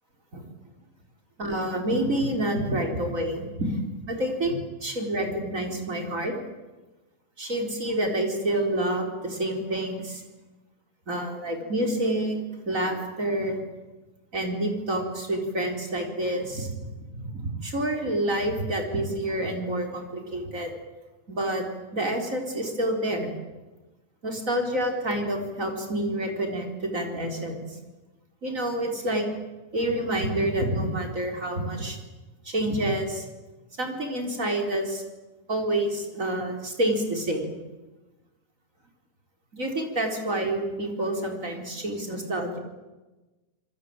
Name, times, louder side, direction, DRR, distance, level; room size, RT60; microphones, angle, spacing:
voice 1, 1.4-4.6 4.8-6.3 7.4-10.2 11.1-12.4 12.7-13.6 14.3-16.7 17.1-20.7 21.3-21.6 21.9-23.3 24.2-27.8 28.4-29.3 29.7-32.0 32.4-33.3 33.8-35.0 35.5-37.6 39.5-42.6, right 1 dB, 20° right, 3 dB, 4.0 m, -28 dB
27.5 x 21.5 x 8.8 m, 1.1 s
omnidirectional pair, 4.6 m